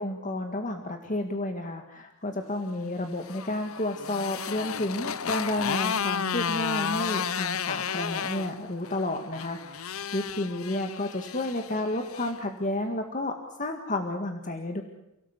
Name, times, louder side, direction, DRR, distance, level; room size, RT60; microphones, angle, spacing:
voice 1, 0.0-14.8, left 1 dB, 40° left, 4 dB, 1.9 m, -31 dB
Motorcycle, 3.0-12.4, left 7 dB, 90° left, 0.9 m, -33 dB
29.5 x 17.5 x 8.3 m, 0.89 s
head